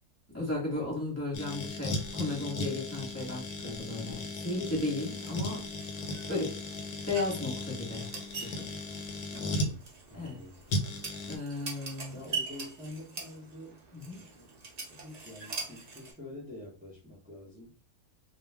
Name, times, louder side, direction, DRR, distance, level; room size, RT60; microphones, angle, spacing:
voice 1, 0.3-5.6 6.3-6.6 7.1-8.1 8.4-8.7 10.1-10.4 11.3-12.2 13.9-14.2, left 2 dB, 10° left, -4 dB, 0.8 m, -34 dB
sound 1, 1.3-9.7 10.7-11.4, left 2 dB, 75° left, 1.1 m, -36 dB
sound 2, 5.0-16.1, right 4 dB, 80° right, 0.3 m, -43 dB
voice 2, 9.3-10.6 12.1-13.8 14.2-14.6 14.9-17.8, left 1 dB, 10° right, -6 dB, 0.4 m, -47 dB
2.4 x 2.2 x 3.3 m, 0.38 s
omnidirectional pair, 1.6 m